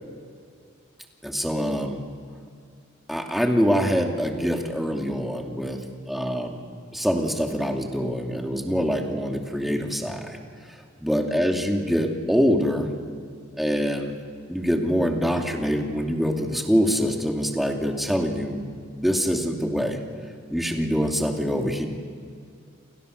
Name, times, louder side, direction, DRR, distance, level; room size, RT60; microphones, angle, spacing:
voice 1, 1.2-2.0 3.1-6.6 6.9-10.4 11.0-12.9 13.6-14.1 14.5-20.0 20.5-21.9, equal, ahead, 1 dB, 2.7 m, -25 dB
29.5 x 27.5 x 6.7 m, 2.2 s
head